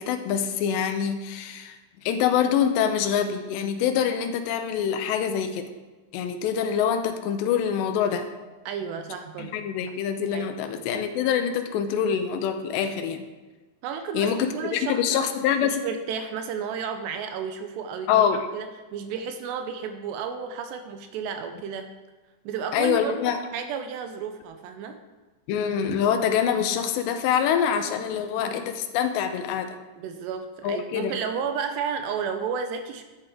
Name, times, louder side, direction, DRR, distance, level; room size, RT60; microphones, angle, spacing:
voice 1, 0.0-5.7 6.1-8.3 9.4-13.3 14.1-15.8 18.1-18.4 22.7-23.4 25.5-29.8 30.6-31.2, left 8 dB, 80° left, 7 dB, 2.8 m, -25 dB
voice 2, 8.7-9.6 10.3-10.8 13.8-15.3 15.6-18.2 18.5-21.9 22.5-25.0 30.0-33.0, right 6 dB, 85° right, 7 dB, 2.6 m, -32 dB
11.5 x 9.3 x 3.7 m, 1.2 s
omnidirectional pair, 5.3 m